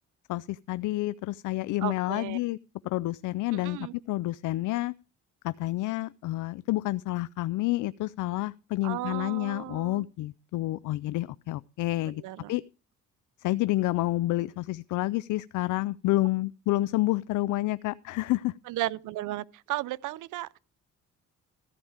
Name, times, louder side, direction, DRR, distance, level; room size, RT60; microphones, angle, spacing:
voice 1, 0.3-2.6 2.8-4.9 5.4-12.2 12.5-12.6 13.4-18.5, left 17 dB, 80° left, 0.5 m, -29 dB
voice 2, 1.8-2.4 3.5-4.0 8.8-10.1 12.1-12.6 18.7-20.6, right 16 dB, 90° right, 0.6 m, -35 dB
14.5 x 4.8 x 8.8 m
cardioid pair, 90°, 30 cm